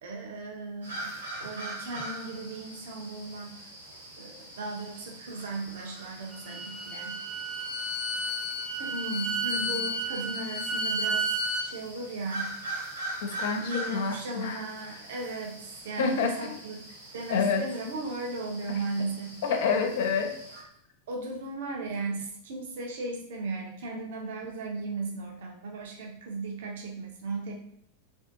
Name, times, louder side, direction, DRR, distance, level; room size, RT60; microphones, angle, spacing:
voice 1, 0.0-1.1 1.4-3.6 4.2-7.2 8.8-12.6 13.6-16.8 17.1-19.6 21.1-27.5, right 2 dB, 55° right, 0 dB, 0.6 m, -36 dB
sound 1, 0.8-20.6, right 1 dB, 80° right, 1.1 m, -42 dB
Bowed string instrument, 6.3-11.7, right 1 dB, 10° right, 0.4 m, -31 dB
voice 2, 13.2-14.6 16.0-16.5 17.3-17.7 19.4-20.3, left 5 dB, 55° left, 4 dB, 0.4 m, -28 dB
2.5 x 2.4 x 2.5 m, 0.70 s
figure-of-eight pair, 90°, 0 cm